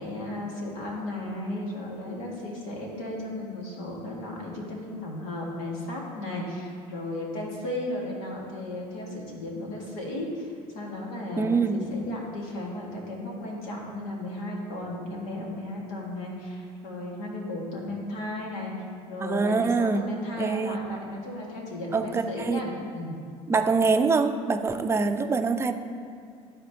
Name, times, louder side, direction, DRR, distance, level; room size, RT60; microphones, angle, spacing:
voice 1, 0.0-18.7 19.1-23.2, left 1 dB, 75° left, -2 dB, 1.7 m, -35 dB
voice 2, 11.4-11.8 19.2-20.8 21.9-22.6 23.5-25.7, right 4 dB, 15° right, 7 dB, 0.4 m, -25 dB
12.0 x 4.3 x 2.8 m, 2.3 s
supercardioid pair, 90°, 15 cm